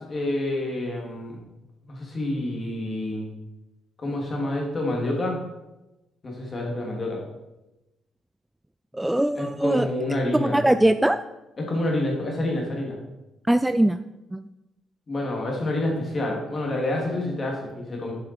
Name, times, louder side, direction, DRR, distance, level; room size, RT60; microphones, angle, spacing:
voice 1, 0.1-1.3 1.9-3.2 4.0-5.4 6.2-7.2 9.3-10.6 11.6-13.0 15.1-18.1, left 1 dB, 40° left, 0 dB, 2.8 m, -28 dB
voice 2, 8.9-9.9 10.3-11.2 13.5-14.0 14.3-14.4, right 1 dB, 10° right, 11 dB, 0.3 m, -21 dB
8.7 x 6.6 x 4.5 m, 0.96 s
cardioid pair, 90°, 0 cm